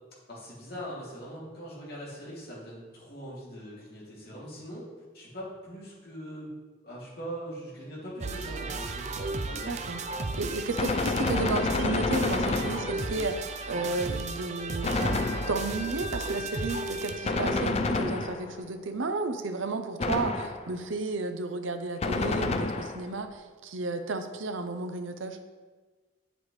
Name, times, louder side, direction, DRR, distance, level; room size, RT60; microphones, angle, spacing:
voice 1, 0.3-4.9 5.1-6.5 6.8-9.1 9.4-9.7, equal, 50° left, -6 dB, 2.5 m, -41 dB
sound 1, 8.2-17.7, right 3 dB, 35° right, 0.4 m, -35 dB
voice 2, 9.7-10.0 10.4-25.4, right 3 dB, 80° right, 7 dB, 0.6 m, -33 dB
Gunshot gunfire, 10.8-13.3 14.8-15.9 17.2-18.7 20.0-20.8 22.0-23.2, left 3 dB, 30° left, 0.4 m, -29 dB
8.3 x 7.8 x 3.2 m, 1.4 s
head